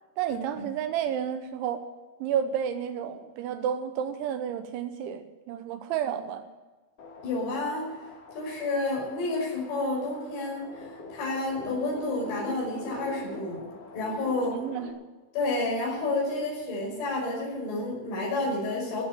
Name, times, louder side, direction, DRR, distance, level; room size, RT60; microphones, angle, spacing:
voice 1, 0.2-1.9 2.2-6.5 14.5-14.9, right 9 dB, 80° right, 9 dB, 3.0 m, -31 dB
sound 1, 7.0-14.9, left 2 dB, 65° left, 1.5 m, -43 dB
voice 2, 7.2-7.9 8.3-13.6 13.9-14.6 15.3-19.0, left 2 dB, 85° left, -2 dB, 8.1 m, -30 dB
16.5 x 7.7 x 8.8 m, 1.3 s
omnidirectional pair, 5.9 m